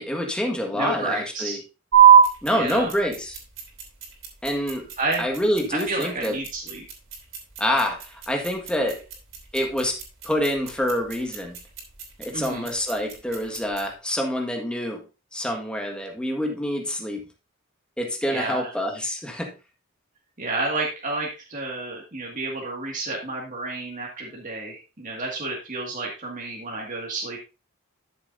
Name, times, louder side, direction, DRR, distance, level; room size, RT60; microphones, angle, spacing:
voice 1, 0.0-1.6 2.4-3.4 4.4-4.9 5.2-6.4 7.6-9.0 9.5-10.0 10.2-11.6 12.2-15.0 15.3-17.2 18.0-19.5, equal, 5° left, 2 dB, 1.7 m, -26 dB
voice 2, 0.7-1.6 2.5-2.9 5.0-5.3 5.9-6.8 12.3-12.6 18.3-18.7 20.4-27.4, right 2 dB, 40° right, -2 dB, 2.1 m, -30 dB
sound 1, 1.9-13.9, right 8 dB, 65° right, 3.2 m, -23 dB
12.5 x 7.1 x 2.7 m, 0.28 s
head